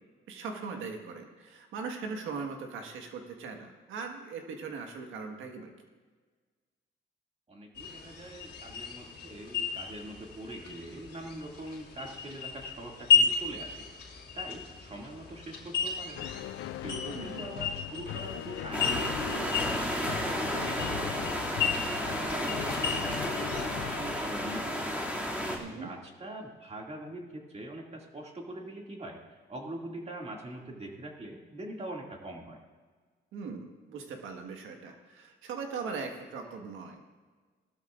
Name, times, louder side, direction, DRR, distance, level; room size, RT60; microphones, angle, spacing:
voice 1, 0.3-5.7 17.1-17.5 25.6-25.9 33.3-37.0, right 5 dB, 90° right, 4 dB, 1.6 m, -40 dB
voice 2, 7.5-13.8 14.3-16.3 16.8-21.4 21.6-25.1 25.4-32.6, right 1 dB, 30° right, 0 dB, 2.3 m, -43 dB
sound 1, 7.7-23.6, left 6 dB, 60° left, 2.8 m, -34 dB
sound 2, 16.2-25.6, left 13 dB, 80° left, 0.5 m, -40 dB
sound 3, 18.7-25.6, equal, 5° right, 2.4 m, -33 dB
18.0 x 12.5 x 2.5 m, 1.5 s
cardioid pair, 90°, 20 cm